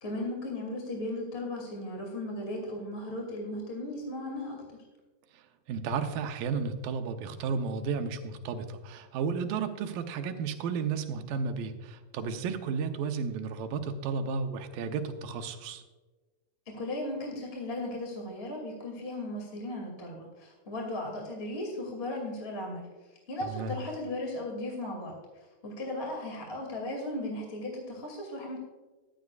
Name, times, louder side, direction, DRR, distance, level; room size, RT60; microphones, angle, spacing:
voice 1, 0.0-4.6 16.7-22.9 23.3-25.2 25.6-28.6, left 1 dB, 20° left, 0 dB, 1.9 m, -36 dB
voice 2, 5.3-15.8 23.5-23.7, right 5 dB, 75° right, 6 dB, 2.3 m, -33 dB
15.0 x 11.5 x 2.4 m, 1.2 s
omnidirectional pair, 4.6 m